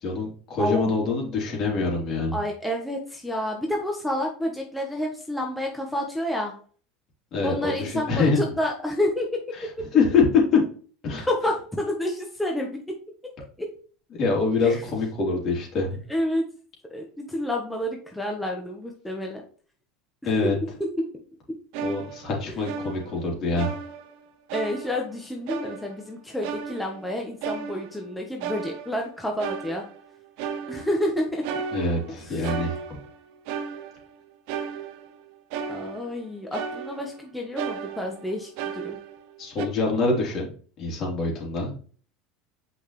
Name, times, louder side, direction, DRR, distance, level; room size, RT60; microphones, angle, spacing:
voice 1, 0.0-2.4 7.3-8.4 9.6-10.6 11.0-11.3 14.1-16.0 20.2-20.6 21.8-23.7 31.7-33.0 39.4-40.5 40.8-41.7, left 4 dB, 50° left, -1 dB, 3.4 m, -24 dB
voice 2, 0.6-0.9 2.3-6.5 7.4-9.9 11.3-13.3 13.6-13.7 14.6-14.8 16.1-16.4 16.9-19.4 20.4-20.5 20.8-20.9 22.5-22.6 24.5-29.8 30.7-31.4 32.2-32.5 35.7-39.0, left 1 dB, 5° left, 0 dB, 1.3 m, -29 dB
sound 1, 21.7-23.2 23.6-24.2 24.5-25.2 25.5-26.1 26.4-28.1 28.4-29.1 29.4-30.1 30.4-31.1 31.4-33.2 33.5-34.2 34.5-35.2 35.5-36.2 36.5-37.2 37.6-39.3 39.6-39.7, right 6 dB, 70° right, 0.8 m, -35 dB
6.5 x 5.4 x 3.3 m, 0.43 s
supercardioid pair, 100°, 0 cm